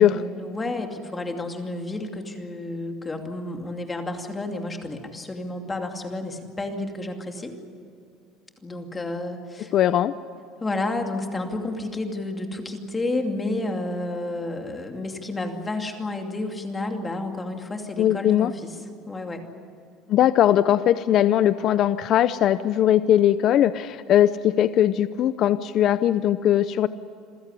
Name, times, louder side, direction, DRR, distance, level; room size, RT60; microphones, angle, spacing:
voice 1, 0.0-7.6 8.6-9.7 10.6-18.8 19.0-19.4, left 2 dB, 15° left, 4 dB, 2.6 m, -31 dB
voice 2, 9.7-10.1 18.0-18.5 20.1-26.9, left 11 dB, 45° left, 14 dB, 0.6 m, -20 dB
27.5 x 16.0 x 9.9 m, 2.4 s
cardioid pair, 145°, 0 cm